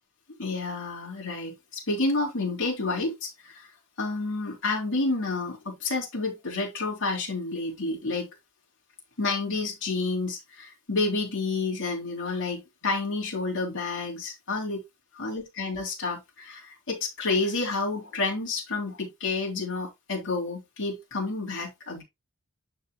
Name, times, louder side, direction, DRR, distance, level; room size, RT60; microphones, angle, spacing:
voice 1, 0.4-3.7 4.0-8.3 9.2-14.8 15.2-22.0, left 3 dB, 55° left, 3.2 m, -30 dB
12.0 x 4.7 x 2.2 m
head